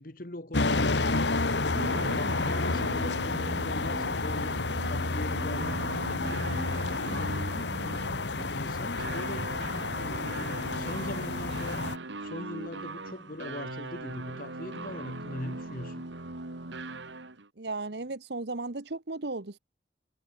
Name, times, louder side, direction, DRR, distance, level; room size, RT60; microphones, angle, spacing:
voice 1, 0.0-1.4 1.9-6.6 7.5-8.1 8.5-9.6 10.0-11.8 12.2-16.0, left 1 dB, 50° left, 1.6 m, -41 dB
sound 1, 0.5-12.0, left 3 dB, 75° left, 1.6 m, -30 dB
sound 2, 0.7-17.5, right 2 dB, 85° right, 2.0 m, -40 dB
voice 2, 17.6-19.6, right 3 dB, 65° right, 1.2 m, -35 dB
head